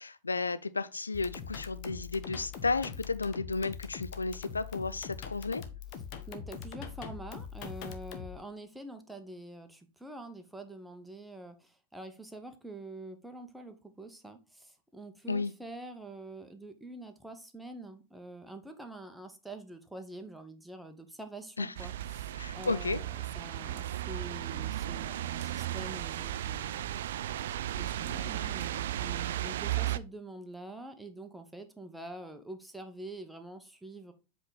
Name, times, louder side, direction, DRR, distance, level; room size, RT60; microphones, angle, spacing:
voice 1, 0.0-5.6 15.3-15.5 21.6-21.7 22.4-23.0, left 3 dB, 80° left, 0.4 m, -33 dB
sound 1, 1.1-8.4, left 7 dB, 40° left, 0.9 m, -43 dB
voice 2, 6.3-27.0 27.7-34.1, right 1 dB, 5° right, 0.9 m, -46 dB
sound 2, 21.7-30.0, right 12 dB, 60° right, 0.3 m, -35 dB
7.7 x 3.5 x 4.0 m
figure-of-eight pair, 90°, 0 cm